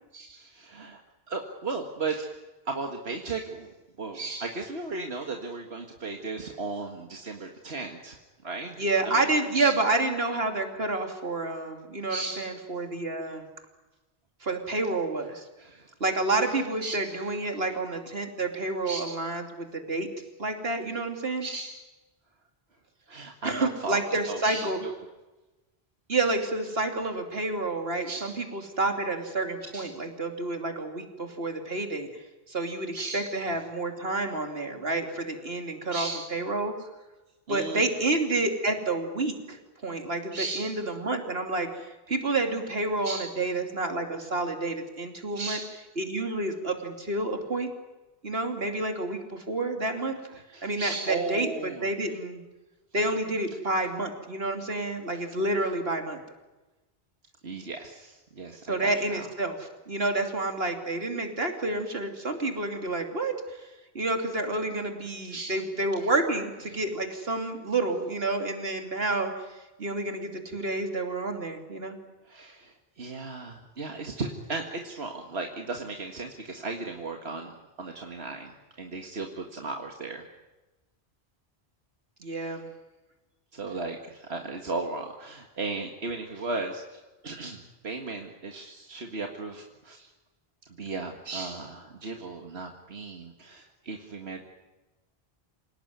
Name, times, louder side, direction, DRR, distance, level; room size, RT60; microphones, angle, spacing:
voice 1, 0.1-1.0 1.3-2.3 2.7-3.7 4.0-8.2 8.4-9.3 9.5-9.7 12.1-12.5 15.6-15.9 16.8-17.4 18.9-19.1 21.4-21.8 23.1-24.9 28.1-28.4 29.7-29.9 32.9-33.3 35.9-36.2 37.5-37.8 40.3-40.7 43.0-43.3 45.4-45.8 50.3-51.8 55.1-55.2 57.4-59.2 65.3-65.6 72.3-77.5 77.8-80.2 83.5-90.1 90.8-94.4, right 3 dB, 90° right, 3 dB, 2.1 m, -36 dB
voice 2, 8.8-13.4 14.4-15.4 16.0-20.1 20.4-21.4 23.4-24.8 26.1-32.1 32.5-36.7 37.5-45.6 46.0-47.7 48.2-50.2 50.6-51.5 51.8-52.4 52.9-56.2 58.7-63.6 63.9-69.3 69.8-71.9 82.2-82.6, right 2 dB, 70° right, 4 dB, 3.3 m, -29 dB
27.5 x 18.5 x 9.5 m, 1.1 s
omnidirectional pair, 1.0 m